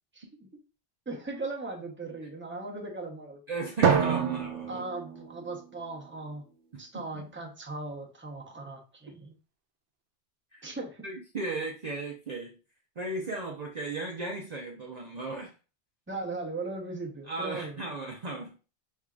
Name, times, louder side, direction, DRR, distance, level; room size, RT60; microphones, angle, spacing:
voice 1, 0.1-0.5 1.1-3.4 4.7-6.4 6.8-9.3 10.6-11.0 16.1-17.8, right 3 dB, 10° right, 0 dB, 0.9 m, -38 dB
voice 2, 3.5-4.8 6.7-7.2 10.5-10.6 11.0-12.5 13.0-15.5 17.3-18.6, right 3 dB, 45° right, 0 dB, 0.7 m, -36 dB
Drum, 3.8-6.1, right 7 dB, 80° right, 1.0 m, -28 dB
5.4 x 3.5 x 2.4 m, 0.34 s
omnidirectional pair, 1.2 m